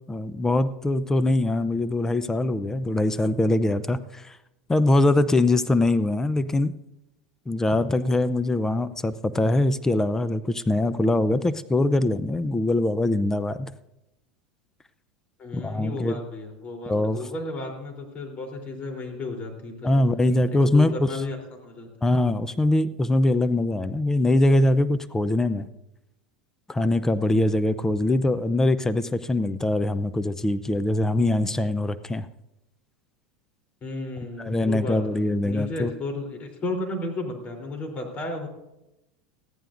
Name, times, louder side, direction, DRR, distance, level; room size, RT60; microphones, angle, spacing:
voice 1, 0.1-4.4 4.7-6.7 7.5-13.7 15.5-16.2 16.9-17.2 19.8-21.1 22.0-25.7 26.7-32.3 34.4-35.9, left 2 dB, 10° left, 13 dB, 0.6 m, -23 dB
voice 2, 15.4-19.9 20.5-21.9 33.8-38.5, left 2 dB, 35° left, 2 dB, 3.5 m, -33 dB
20.0 x 14.0 x 2.6 m, 0.93 s
hypercardioid pair, 100°, 4 cm